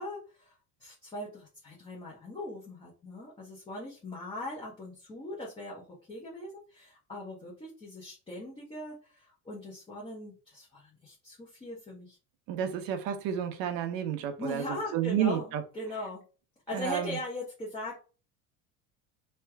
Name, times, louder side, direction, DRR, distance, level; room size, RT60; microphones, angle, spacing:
voice 1, 0.0-5.8 6.1-12.2 14.4-15.5 15.7-16.2 16.7-18.0, left 1 dB, 15° left, 1.1 m, -40 dB
voice 2, 12.5-15.6 16.7-17.2, right 9 dB, 55° right, 1.0 m, -31 dB
3.3 x 3.0 x 4.6 m
cardioid pair, 165°, 40 cm